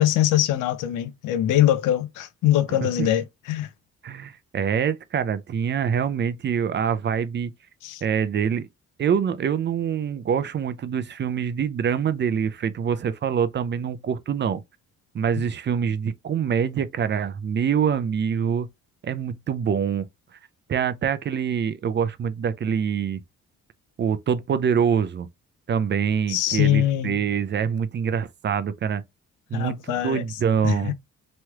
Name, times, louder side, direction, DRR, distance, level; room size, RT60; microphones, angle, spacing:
voice 1, 0.0-3.7 7.8-8.0 26.3-27.2 29.5-30.2 30.6-30.9, left 12 dB, 85° left, 0.5 m, -22 dB
voice 2, 4.0-7.5 8.0-8.7 9.0-14.6 15.1-18.7 19.0-20.1 20.7-23.2 24.0-25.3 25.7-29.0 29.5-30.9, right 7 dB, 35° right, 0.4 m, -25 dB
3.1 x 3.0 x 2.3 m
cardioid pair, 90°, 30 cm